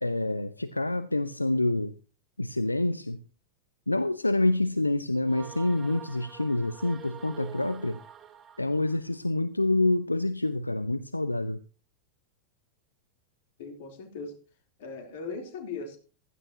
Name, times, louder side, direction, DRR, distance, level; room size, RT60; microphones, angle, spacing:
voice 1, 0.0-1.9 2.4-3.2 3.9-8.0 8.6-11.6, left 2 dB, 85° left, 0.5 m, -27 dB
sound 1, 5.2-9.1, right 8 dB, 25° right, 2.2 m, -46 dB
voice 2, 13.6-14.3 14.8-16.0, left 4 dB, 55° left, 3.5 m, -38 dB
15.5 x 13.5 x 2.9 m
figure-of-eight pair, 90°, 0 cm